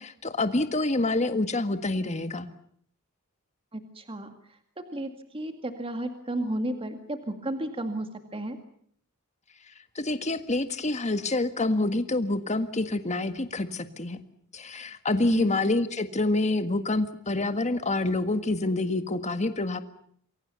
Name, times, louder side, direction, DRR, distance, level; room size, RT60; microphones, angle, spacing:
voice 1, 0.0-2.5 10.0-14.2 14.5-19.8, left 2 dB, 30° left, 9 dB, 1.8 m, -27 dB
voice 2, 3.7-4.3 4.9-8.6 15.3-15.5, right 1 dB, 25° right, 6 dB, 2.2 m, -33 dB
28.0 x 23.0 x 7.0 m, 0.64 s
head